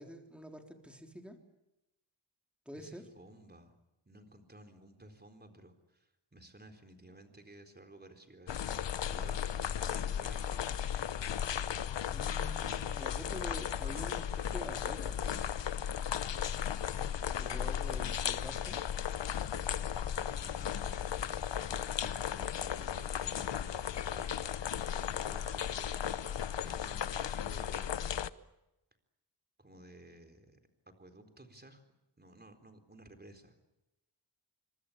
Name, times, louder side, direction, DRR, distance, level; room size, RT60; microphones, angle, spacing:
voice 1, 0.0-1.4 2.7-3.1 9.9-10.0 12.1-15.4 17.3-18.8, equal, 5° right, 4 dB, 3.7 m, -47 dB
voice 2, 2.7-3.8 4.1-8.7 9.0-10.7 17.4-17.7 20.2-21.1 21.9-23.7 24.1-24.4 24.8-28.4 29.6-30.6 30.9-31.8 32.2-33.7, right 1 dB, 25° right, 6 dB, 4.1 m, -55 dB
sound 1, 8.5-28.3, left 9 dB, 85° left, 0.9 m, -35 dB
26.0 x 24.0 x 8.7 m, 0.92 s
wide cardioid pair, 110°, 42 cm